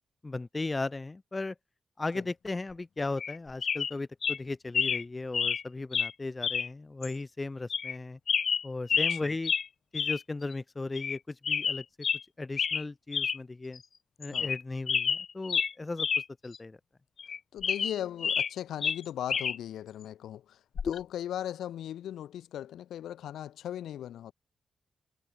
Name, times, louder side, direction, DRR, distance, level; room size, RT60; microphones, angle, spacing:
voice 1, 0.2-1.5 2.0-8.2 8.6-9.5 9.9-11.8 12.4-13.8 14.2-16.1 16.4-16.8, left 3 dB, 30° left, 3.0 m, -36 dB
sound 1, 3.2-3.4 3.6-3.9 4.2-4.4 4.7-5.0 5.3-5.6 5.9-6.1 6.4-6.7 7.0-7.1 7.7-8.0 8.3-9.2 9.4-9.7 10.0-10.2 10.5-10.6 11.0-11.2 11.4-12.2 12.6-12.8 13.1-13.4 13.8-13.9 14.2-14.6 14.9-16.2 16.5-16.6 17.2-18.5 18.8-19.6 20.8-21.0, left 6 dB, 65° left, 2.0 m, -29 dB
voice 2, 8.9-9.3 14.3-14.5 17.5-24.3, left 11 dB, 85° left, 7.9 m, -38 dB
supercardioid pair, 50°, 0 cm